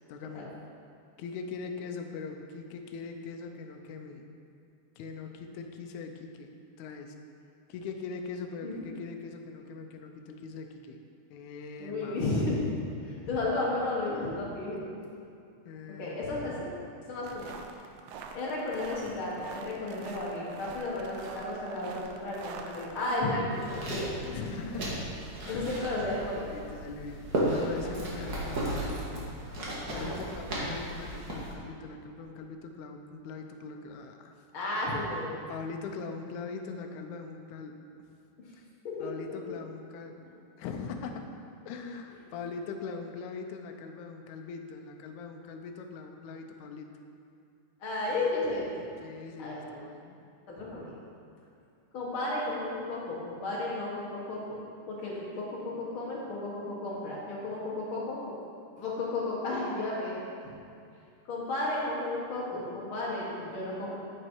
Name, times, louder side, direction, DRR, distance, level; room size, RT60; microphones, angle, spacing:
voice 1, 0.1-0.5 1.2-4.2 5.0-6.5 6.8-7.1 7.7-11.0 11.3-12.2 15.6-16.2 24.3-25.0 25.4-25.6 26.5-29.0 29.9-34.4 35.5-37.7 39.0-40.3 40.6-41.2 41.6-46.9 49.0-50.2, left 4 dB, 75° left, 4 dB, 1.8 m, -41 dB
voice 2, 11.8-12.7 13.0-14.9 16.0-16.7 17.1-17.5 18.3-24.5 25.5-26.5 27.9-28.1 29.9-30.2 34.5-35.3 38.8-39.6 47.8-48.9 49.4-49.6 50.5-51.0 51.9-54.6 54.9-58.2 58.8-60.5 61.3-64.0, left 2 dB, 50° left, -5 dB, 1.9 m, -33 dB
sound 1, 17.2-23.2, right 5 dB, 85° right, 2.3 m, -46 dB
sound 2, 23.5-31.5, right 1 dB, 45° right, 1.2 m, -35 dB
9.2 x 7.0 x 4.6 m, 2.5 s
omnidirectional pair, 3.9 m